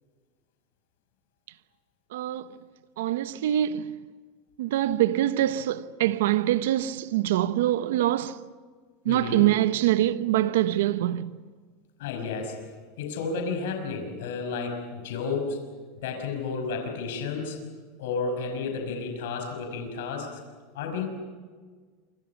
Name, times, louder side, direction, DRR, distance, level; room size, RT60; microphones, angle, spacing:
voice 1, 2.1-2.4 3.0-3.8 4.6-8.4 9.1-11.3, right 13 dB, 85° right, 1.0 m, -24 dB
voice 2, 9.1-9.5 12.0-12.7 13.0-15.6 16.0-17.7 18.0-20.4 20.7-21.1, left 4 dB, 75° left, 5.7 m, -32 dB
27.5 x 25.5 x 6.0 m
supercardioid pair, 160°, 0 cm